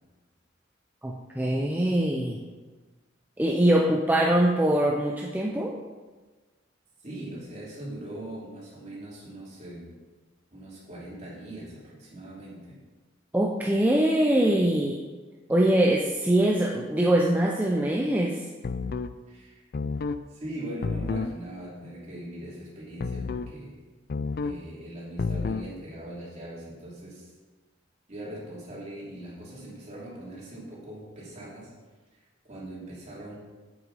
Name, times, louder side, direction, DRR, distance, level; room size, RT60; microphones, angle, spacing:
voice 1, 1.0-2.4 3.4-5.7 13.3-15.0 15.5-18.4, right 1 dB, 10° right, -1 dB, 0.5 m, -23 dB
voice 2, 7.0-9.9 10.5-12.8 19.3-19.6 20.3-23.8 24.4-27.3 28.1-31.7 32.1-33.3, right 1 dB, 35° right, -6 dB, 3.0 m, -41 dB
sound 1, 18.6-19.1 19.7-20.2 20.8-21.3 23.0-23.5 24.1-24.6 25.2-25.7, left 4 dB, 50° left, 0.4 m, -30 dB
7.9 x 7.7 x 4.1 m, 1.3 s
head